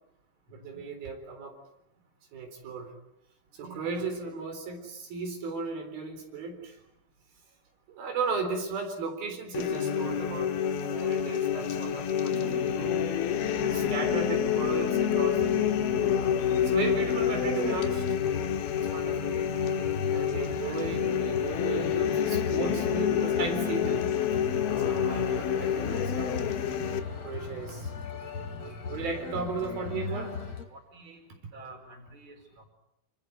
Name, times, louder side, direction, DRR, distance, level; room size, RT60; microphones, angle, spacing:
voice 1, 0.5-1.5 2.3-2.9 3.6-6.8 7.9-10.5 10.8-12.9 13.6-16.2 16.6-18.1 18.9-19.4 20.1-24.4 24.8-26.5 27.2-27.9 28.9-30.3, right 4 dB, 80° right, 4 dB, 5.8 m, -35 dB
voice 2, 3.6-4.4 13.6-14.1 20.6-20.8 30.0-31.2 31.5-32.6, right 3 dB, 35° right, 4 dB, 5.3 m, -49 dB
sound 1, 9.5-27.0, left 8 dB, 90° left, 3.3 m, -28 dB
sound 2, 13.6-30.6, left 4 dB, 45° left, 3.6 m, -39 dB
27.0 x 26.5 x 8.0 m, 0.78 s
omnidirectional pair, 4.2 m